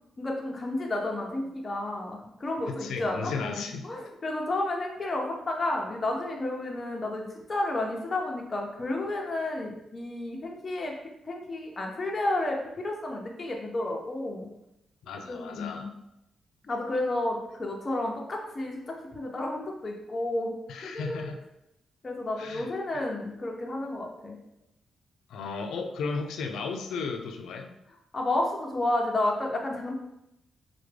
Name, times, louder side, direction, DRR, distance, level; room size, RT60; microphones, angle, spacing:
voice 1, 0.2-10.9 11.2-14.5 15.3-15.9 16.6-20.5 20.8-21.3 22.0-24.4 28.1-30.0, left 2 dB, 25° left, 0 dB, 0.7 m, -31 dB
voice 2, 2.7-3.9 15.0-15.9 20.7-21.4 22.4-22.7 25.3-27.8, left 4 dB, 90° left, 6 dB, 0.4 m, -35 dB
4.6 x 2.2 x 3.3 m, 0.84 s
cardioid pair, 150°, 0 cm